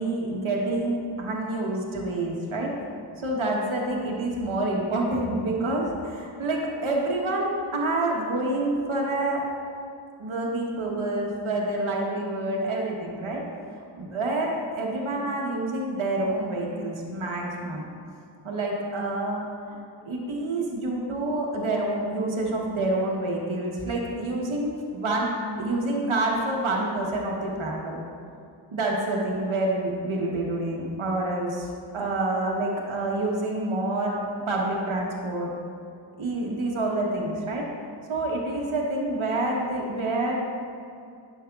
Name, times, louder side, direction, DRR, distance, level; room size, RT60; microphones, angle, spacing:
voice 1, 0.0-2.7 3.2-9.4 10.2-13.4 14.0-17.8 18.4-19.8 20.0-25.3 25.6-28.0 28.7-31.7 31.9-34.2 34.5-35.5 36.2-37.6 38.1-40.3, right 2 dB, 85° right, -2 dB, 1.0 m, -27 dB
10.0 x 6.3 x 2.3 m, 2.4 s
cardioid pair, 40°, 47 cm